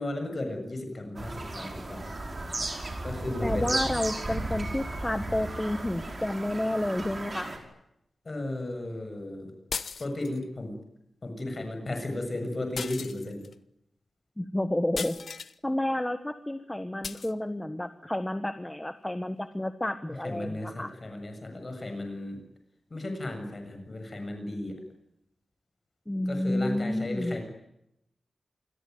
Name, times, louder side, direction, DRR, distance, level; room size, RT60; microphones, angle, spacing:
voice 1, 0.0-2.1 3.0-3.8 8.2-9.5 10.0-10.8 11.2-13.5 20.1-22.4 22.9-24.8 26.3-27.4, left 1 dB, 30° left, 6 dB, 7.3 m, -35 dB
Bird vocalization bird call bird song, 1.2-7.6, right 2 dB, 30° right, 5.1 m, -35 dB
voice 2, 3.4-7.5 14.4-15.2 15.6-20.9 26.1-27.3, left 1 dB, 10° left, 10 dB, 1.3 m, -30 dB
sound 1, 9.7-10.4 12.8-13.5 15.0-15.6 17.0-17.3, left 5 dB, 60° left, 1.1 m, -37 dB
27.5 x 21.5 x 9.5 m, 0.81 s
wide cardioid pair, 170°, 0 cm